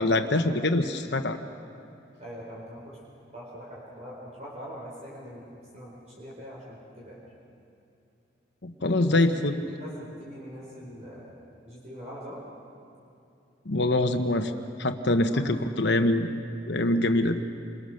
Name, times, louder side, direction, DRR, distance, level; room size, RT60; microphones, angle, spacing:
voice 1, 0.0-1.4 8.6-9.5 13.6-14.5 14.8-16.3 16.7-17.4, left 2 dB, 65° left, 7 dB, 1.1 m, -24 dB
voice 2, 2.2-3.0 3.3-7.2 9.1-11.3 11.6-12.4 15.3-15.4, equal, 35° right, -5 dB, 4.6 m, -43 dB
28.5 x 22.5 x 6.6 m, 2.8 s
head